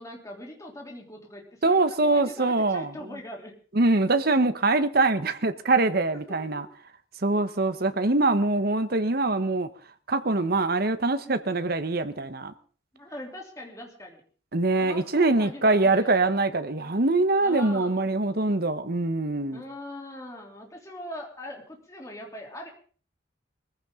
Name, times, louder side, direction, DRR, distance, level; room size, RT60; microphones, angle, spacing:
voice 1, 0.0-3.5 6.3-6.6 12.9-14.2 14.8-16.2 17.4-18.0 19.5-22.7, left 1 dB, 15° left, 3.2 m, -41 dB
voice 2, 1.6-2.9 3.7-6.7 7.2-9.7 10.1-12.5 14.5-19.6, right 2 dB, 50° right, 1.1 m, -23 dB
21.0 x 15.0 x 3.8 m
head